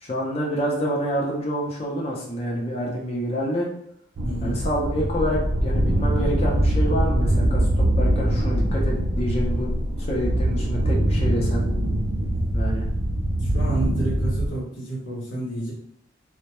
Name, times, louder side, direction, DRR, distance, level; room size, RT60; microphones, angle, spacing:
voice 1, 0.0-3.7 4.4-11.7 12.5-12.9, equal, 30° left, -3 dB, 0.5 m, -27 dB
voice 2, 4.2-4.6 12.3-12.4 13.4-15.7, right 2 dB, 80° left, -5 dB, 0.8 m, -30 dB
sound 1, 4.2-14.5, right 1 dB, 60° right, 0.5 m, -23 dB
2.2 x 2.0 x 2.9 m, 0.69 s
head